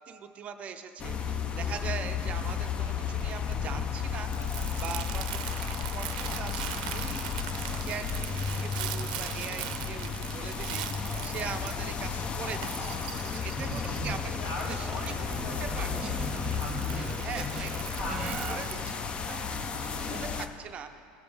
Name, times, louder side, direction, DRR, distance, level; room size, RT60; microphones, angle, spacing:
voice 1, 0.1-4.3 4.8-7.3 7.8-13.0 13.3-15.1 15.6-16.4 17.2-17.7 18.0-19.0 19.3-21.0, right 7 dB, 30° right, 7 dB, 0.5 m, -41 dB
sound 1, 1.0-20.5, left 6 dB, 25° left, 0.5 m, -33 dB
Crumpling crinkling, 2.5-19.0, right 12 dB, 85° right, 0.6 m, -41 dB
voice 2, 4.3-4.7 14.4-16.0 16.3-17.3 17.9-18.9, left 1 dB, 65° left, -2 dB, 2.5 m, -41 dB
sound 2, 13.6-18.6, right 3 dB, 15° right, 1.0 m, -38 dB
17.5 x 7.0 x 3.4 m, 2.7 s
supercardioid pair, 140°, 4 cm